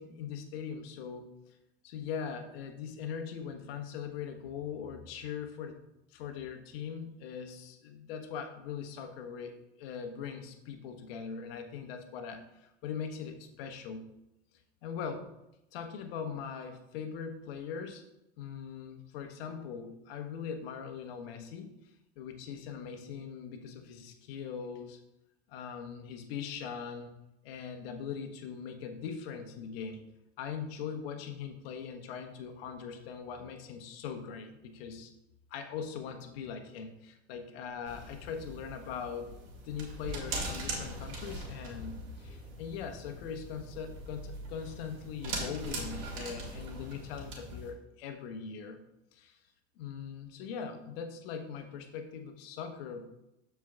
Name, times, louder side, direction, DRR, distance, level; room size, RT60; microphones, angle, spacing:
voice 1, 0.0-1.5 1.8-5.8 6.1-14.0 14.8-15.3 15.7-18.0 18.4-21.7 22.2-25.0 25.5-27.1 27.4-30.0 30.4-35.1 35.5-39.3 39.6-48.8 49.1-49.4 49.8-53.1, left 7 dB, 65° left, 6 dB, 1.2 m, -41 dB
sound 1, 37.9-47.7, right 2 dB, 60° right, 2.4 m, -41 dB
13.5 x 4.7 x 2.4 m, 0.88 s
hypercardioid pair, 80°, 33 cm